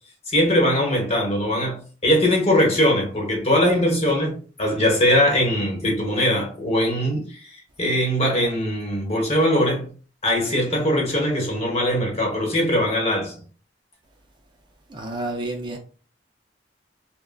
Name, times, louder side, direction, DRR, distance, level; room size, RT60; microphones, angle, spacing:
voice 1, 0.3-9.9 10.2-13.3, equal, 35° left, 1.1 m, -21 dB
voice 2, 14.9-15.8, right 2 dB, 25° right, 0.4 m, -30 dB
3.6 x 2.2 x 2.2 m
head